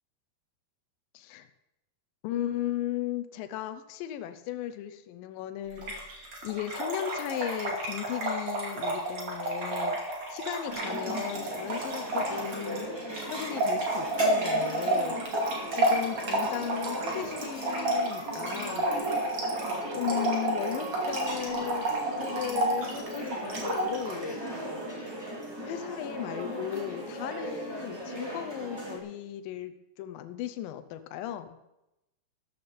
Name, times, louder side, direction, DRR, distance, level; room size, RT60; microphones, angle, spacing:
voice 1, 1.1-1.5 2.2-6.2 6.4-10.0 10.3-12.9 13.3-15.4 15.7-18.9 19.9-24.4 25.6-31.6, left 11 dB, 85° left, 9 dB, 2.0 m, -36 dB
Trickle dribble / Fill (with liquid), 5.8-24.2, right 1 dB, 40° right, 2.7 m, -31 dB
sound 1, 10.7-29.0, equal, 10° right, 1.9 m, -38 dB
13.0 x 13.0 x 4.3 m, 0.92 s
omnidirectional pair, 5.0 m